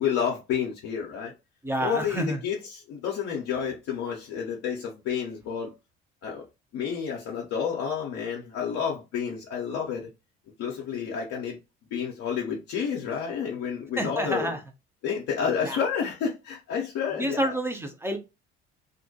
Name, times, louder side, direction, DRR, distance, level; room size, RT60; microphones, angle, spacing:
voice 1, 0.0-1.3 1.8-5.7 6.2-6.4 6.7-10.1 10.6-11.6 11.9-14.5 15.0-17.5, left 7 dB, 50° left, 0.7 m, -30 dB
voice 2, 1.6-2.4 14.0-14.6 15.6-15.8 17.2-18.2, right 1 dB, 10° right, 0.6 m, -28 dB
2.5 x 2.1 x 2.7 m
figure-of-eight pair, 60°, 32 cm